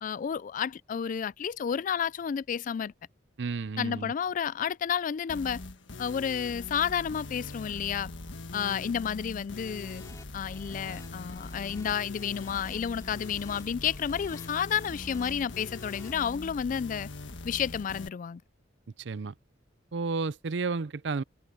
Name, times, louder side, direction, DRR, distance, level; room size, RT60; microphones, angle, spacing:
voice 1, 0.0-2.9 3.8-5.6 6.0-8.1 8.5-10.0 10.3-17.1 17.4-18.4, left 8 dB, 45° left, 0.3 m, -31 dB
voice 2, 3.4-4.1 19.0-19.3 19.9-21.2, right 4 dB, 70° right, 0.5 m, -32 dB
sound 1, 5.3-18.1, left 2 dB, 80° left, 1.5 m, -42 dB
sound 2, 9.5-16.1, left 1 dB, 20° left, 4.7 m, -50 dB
head